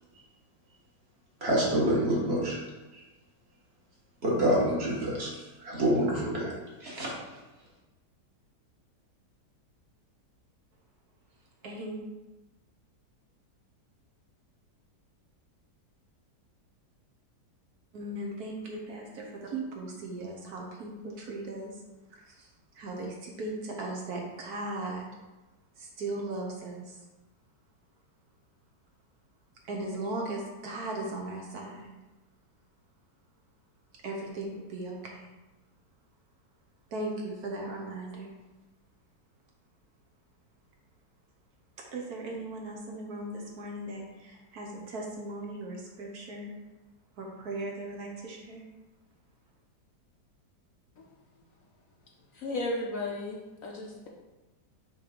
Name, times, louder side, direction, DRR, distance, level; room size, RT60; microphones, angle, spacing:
voice 1, 1.4-2.6 2.9-3.0 4.2-6.5 6.8-7.1, right 1 dB, 40° right, -5 dB, 1.6 m, -27 dB
voice 2, 11.6-12.0 17.9-21.7 22.1-22.5 22.8-25.0 25.8-26.9 29.7-31.8 34.0-35.3 36.9-38.3 41.9-46.5 47.2-48.6, right 2 dB, 65° right, 0 dB, 1.3 m, -37 dB
voice 3, 52.3-54.1, left 2 dB, 60° left, -1 dB, 0.9 m, -34 dB
5.8 x 3.2 x 5.0 m, 1.1 s
omnidirectional pair, 1.9 m